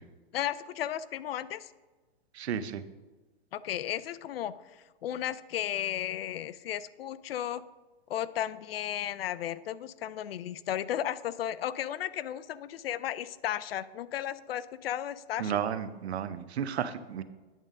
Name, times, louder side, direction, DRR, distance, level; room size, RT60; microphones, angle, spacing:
voice 1, 0.3-1.7 3.5-4.6 5.0-7.6 8.1-15.6, left 11 dB, 65° left, 16 dB, 0.5 m, -34 dB
voice 2, 2.3-2.8 15.4-17.2, right 8 dB, 85° right, 12 dB, 0.7 m, -33 dB
9.1 x 3.7 x 6.4 m, 1.2 s
hypercardioid pair, 160°, 31 cm